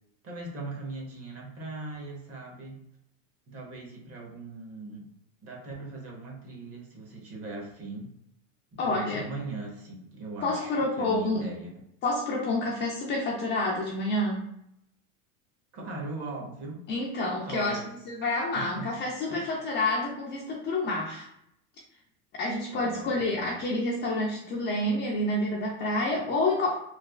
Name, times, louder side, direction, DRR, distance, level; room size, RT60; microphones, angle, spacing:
voice 1, 0.2-2.8 3.5-5.1 5.4-8.1 8.7-11.7 15.7-16.9 17.4-17.9 18.5-18.9 19.3-19.5 22.7-23.6, right 2 dB, 35° right, 0 dB, 0.9 m, -39 dB
voice 2, 8.8-9.3 10.4-11.5 12.0-14.4 16.9-17.8 18.1-21.3 22.4-26.8, left 2 dB, 25° left, -3 dB, 0.3 m, -28 dB
3.2 x 2.2 x 2.2 m, 0.77 s
supercardioid pair, 120°, 43 cm